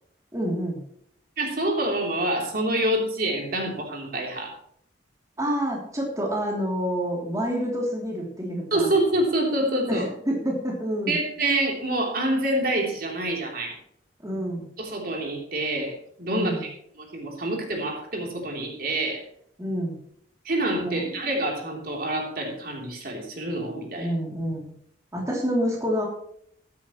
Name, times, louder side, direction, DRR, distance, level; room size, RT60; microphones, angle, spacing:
voice 1, 0.3-0.8 5.4-8.9 9.9-11.2 14.2-14.7 16.3-16.7 19.6-20.0 20.8-21.1 24.0-24.7 25.1-26.0, equal, 15° right, -2 dB, 2.9 m, -28 dB
voice 2, 1.4-4.5 8.7-10.0 11.1-13.7 14.8-16.7 17.0-19.2 20.4-24.1, right 1 dB, 50° right, 1 dB, 3.3 m, -27 dB
14.0 x 12.0 x 3.1 m, 0.67 s
head